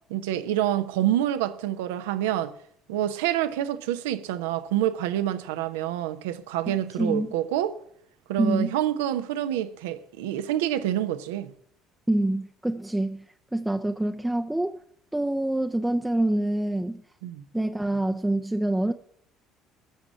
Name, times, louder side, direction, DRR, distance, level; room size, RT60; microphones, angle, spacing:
voice 1, 0.1-2.5 2.9-7.8 8.3-11.5 17.2-17.4, right 12 dB, 75° right, 0.8 m, -27 dB
voice 2, 6.7-7.3 8.4-8.7 12.1-13.2 13.5-14.8 15.1-17.0 17.5-18.9, right 1 dB, 10° right, 0.7 m, -26 dB
15.0 x 6.2 x 9.3 m
figure-of-eight pair, 55°, 0 cm